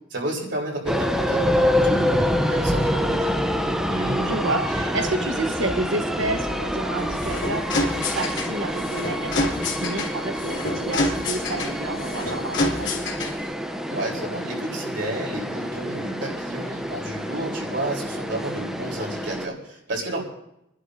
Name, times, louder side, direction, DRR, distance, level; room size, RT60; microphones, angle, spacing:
voice 1, 0.1-3.3 13.9-20.2, right 1 dB, 65° right, -2 dB, 3.7 m, -31 dB
sound 1, 0.9-19.5, equal, 5° right, 0.6 m, -26 dB
voice 2, 3.9-9.5 9.8-13.0 20.1-20.2, right 2 dB, 80° right, 4 dB, 1.1 m, -30 dB
sound 2, 7.0-13.5, left 2 dB, 70° left, 3.0 m, -28 dB
28.5 x 11.5 x 2.7 m, 0.81 s
head